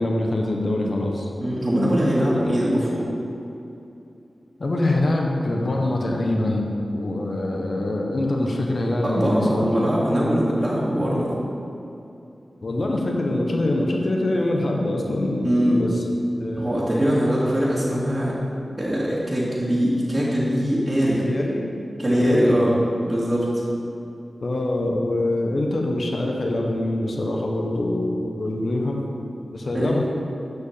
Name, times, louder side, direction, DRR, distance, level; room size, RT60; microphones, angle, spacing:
voice 1, 0.0-1.3 2.4-2.7 4.6-9.6 12.6-16.0 16.4-16.7 21.2-21.6 22.1-22.5 24.4-29.0 29.5-30.0, left 1 dB, 65° left, 0 dB, 1.1 m, -24 dB
voice 2, 1.4-3.0 9.0-11.3 15.4-15.8 16.6-18.3 18.8-21.2 22.0-22.7 23.0-23.5 29.7-30.0, equal, 25° right, -10 dB, 2.2 m, -22 dB
7.8 x 5.7 x 7.1 m, 2.7 s
cardioid pair, 40°, 0 cm